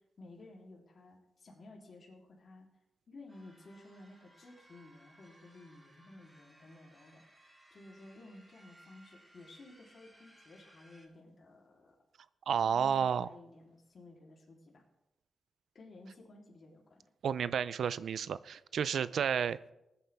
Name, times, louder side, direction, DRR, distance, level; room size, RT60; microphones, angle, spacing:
voice 1, 0.2-2.7 3.1-7.2 7.7-11.9 12.6-14.8 15.7-17.0, left 2 dB, 50° left, -2 dB, 3.3 m, -54 dB
sound 1, 3.3-11.1, right 1 dB, 15° right, 3.5 m, -62 dB
voice 2, 12.5-13.3 17.2-19.6, right 7 dB, 80° right, 16 dB, 0.5 m, -31 dB
19.5 x 9.7 x 3.5 m, 0.89 s
cardioid pair, 100°, 0 cm